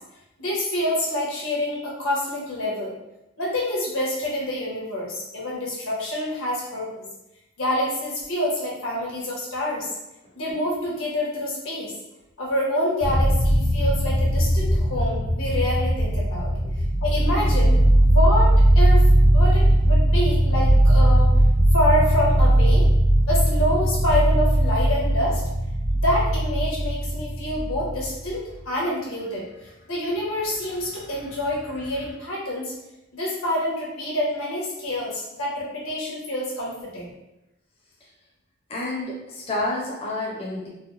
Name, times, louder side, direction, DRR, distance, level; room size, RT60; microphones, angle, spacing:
voice 1, 0.4-2.9 3.4-7.0 7.6-9.9 10.3-11.9 12.4-16.5 17.0-19.0 19.3-21.3 21.7-22.9 23.3-25.4 25.9-32.7 33.1-37.1, left 1 dB, 90° left, -4 dB, 1.2 m, -27 dB
sound 1, 13.0-28.3 31.4-32.1, right 1 dB, 60° left, 0.8 m, -19 dB
voice 2, 38.7-40.7, left 2 dB, 30° left, -4 dB, 0.5 m, -29 dB
3.9 x 2.1 x 3.2 m, 0.91 s
head